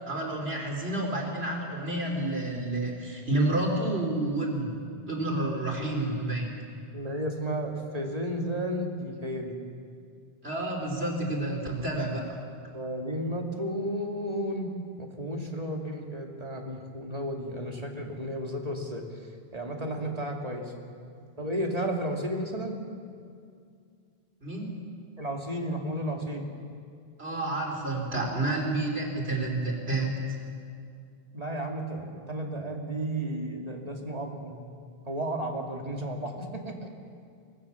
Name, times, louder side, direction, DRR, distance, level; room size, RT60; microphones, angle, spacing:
voice 1, 0.1-4.7 5.1-6.5 10.4-12.4 24.4-24.8 27.2-30.2, right 2 dB, 80° right, 0 dB, 4.1 m, -29 dB
voice 2, 6.9-9.5 12.7-14.7 15.0-19.0 19.5-20.6 21.4-22.8 25.2-26.5 31.3-34.5 35.1-36.9, right 1 dB, 40° right, 0 dB, 2.7 m, -33 dB
24.0 x 19.0 x 7.1 m, 2.3 s
omnidirectional pair, 1.0 m